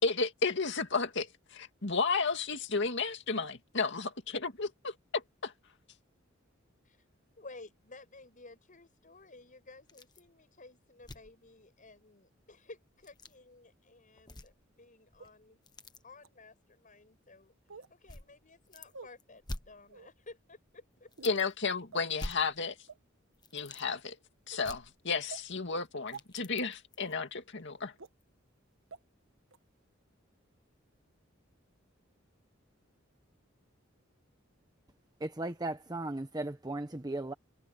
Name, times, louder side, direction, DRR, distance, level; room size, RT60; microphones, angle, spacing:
voice 1, 0.0-5.5 21.2-22.8 23.5-24.2 24.5-27.9, left 4 dB, 65° left, 2.3 m, -33 dB
voice 2, 7.4-15.6 16.0-21.1, left 3 dB, 40° left, 6.9 m, -54 dB
sound 1, 9.9-10.3 10.6-10.7 11.0-11.4 12.9-13.3 14.2-14.8 15.1-16.0 16.9-17.0 18.1-18.9 19.2-20.4 20.7-20.8 21.1-21.7 22.1-23.0 23.3-23.9 24.6-25.5 25.9-27.1 27.6-27.7 28.2-28.3, left 1 dB, 20° left, 1.2 m, -47 dB
sound 2, 15.2-15.3 16.2-16.3 17.7-17.9 18.9-19.1 19.9-20.1 21.1-21.3 21.9-22.1 22.9-23.0 23.6-23.8 24.5-24.6 25.3-25.4 26.1-26.2 27.1-27.2 28.0-28.1 28.9-29.0 29.5-29.6, right 5 dB, 80° right, 1.3 m, -48 dB
voice 3, 35.2-37.3, right 2 dB, 20° right, 1.1 m, -36 dB
head